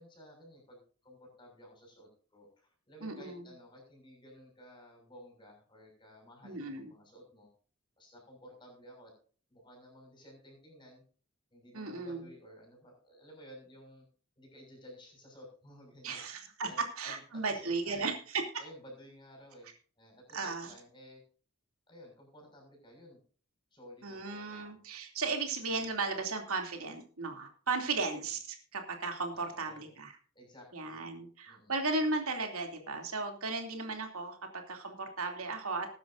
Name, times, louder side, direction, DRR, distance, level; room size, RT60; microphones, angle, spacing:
voice 1, 0.0-7.5 8.0-9.1 9.5-11.0 11.5-14.0 14.4-18.2 18.6-19.7 20.0-21.2 21.9-23.2 23.7-24.9 27.8-28.3 29.3-29.9 30.3-31.2 31.5-31.8, equal, 20° left, 2 dB, 6.6 m, -54 dB
voice 2, 3.0-3.5 6.4-6.9 11.7-12.3 16.0-16.7 17.0-18.1 20.3-20.7 24.0-28.4 28.7-30.2 30.7-35.9, right 3 dB, 80° right, 3 dB, 2.8 m, -35 dB
21.0 x 10.0 x 2.6 m, 0.41 s
head